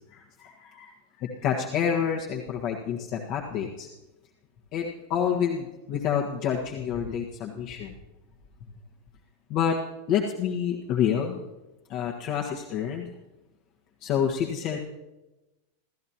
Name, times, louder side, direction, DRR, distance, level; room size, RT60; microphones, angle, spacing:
voice 1, 0.1-0.9 1.2-3.9 4.7-7.9 9.5-9.8 10.1-11.4 11.9-13.1 14.0-14.8, left 8 dB, 45° left, 1 dB, 1.6 m, -28 dB
28.0 x 13.5 x 2.9 m, 1.0 s
figure-of-eight pair, 90°, 0 cm